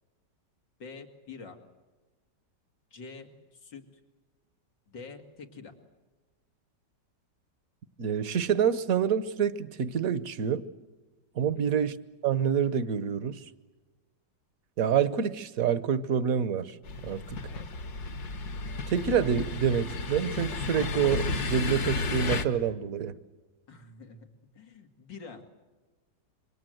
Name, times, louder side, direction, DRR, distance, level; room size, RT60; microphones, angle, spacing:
voice 1, 0.8-1.6 2.9-3.8 4.9-5.7 11.4-11.7 17.4-17.7 19.4-19.5 23.7-24.3 24.5-25.5, left 4 dB, 90° left, 5 dB, 3.1 m, -46 dB
voice 2, 8.0-10.6 11.4-12.0 12.2-13.4 14.8-16.8 17.0-17.4 18.9-23.1, right 7 dB, 55° right, 15 dB, 1.4 m, -27 dB
sound 1, 16.8-22.5, left 3 dB, 60° left, 1.9 m, -33 dB
27.5 x 24.0 x 7.9 m, 1.2 s
omnidirectional pair, 1.9 m